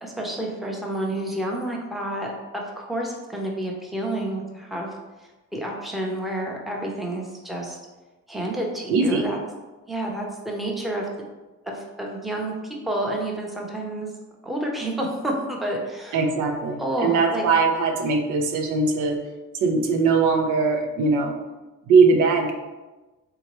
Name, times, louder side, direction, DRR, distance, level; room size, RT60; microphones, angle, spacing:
voice 1, 0.0-4.9 5.5-7.8 8.3-9.4 9.9-11.1 11.6-12.5 12.9-14.1 14.4-16.2 16.8-17.4, right 1 dB, ahead, -1 dB, 0.6 m, -29 dB
voice 2, 8.9-9.3 16.1-19.2 19.6-21.4 21.9-22.5, right 4 dB, 85° right, 3 dB, 0.6 m, -20 dB
3.4 x 2.8 x 3.0 m, 1.1 s
cardioid pair, 90°, 30 cm